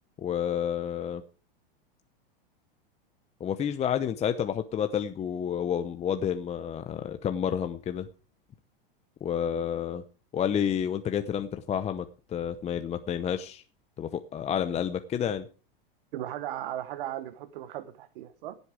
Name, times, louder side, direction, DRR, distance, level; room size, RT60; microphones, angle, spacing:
voice 1, 0.2-1.2 3.4-8.1 9.2-10.0 10.3-13.6 14.0-15.5, left 9 dB, 20° left, 9 dB, 0.8 m, -30 dB
voice 2, 16.1-18.6, right 12 dB, 70° right, 12 dB, 1.2 m, -37 dB
16.0 x 8.1 x 4.9 m, 0.37 s
hypercardioid pair, 120°, 29 cm